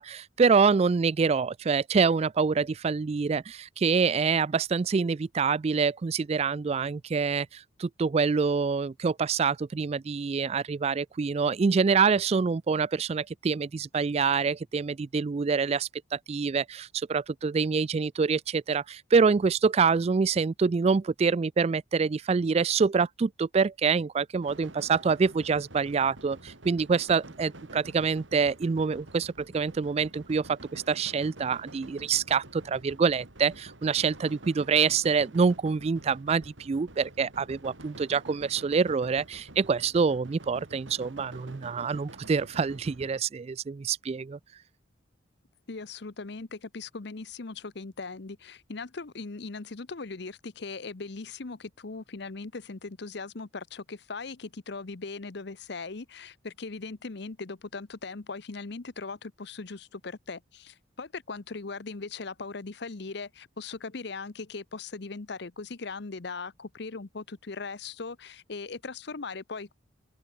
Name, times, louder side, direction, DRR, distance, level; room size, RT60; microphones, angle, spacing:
voice 1, 0.0-44.4, right 5 dB, 35° right, 0.3 m, -26 dB
sound 1, 24.4-43.2, right 1 dB, 80° right, 4.0 m, -48 dB
voice 2, 45.7-69.7, left 4 dB, 60° left, 0.9 m, -39 dB
open air
head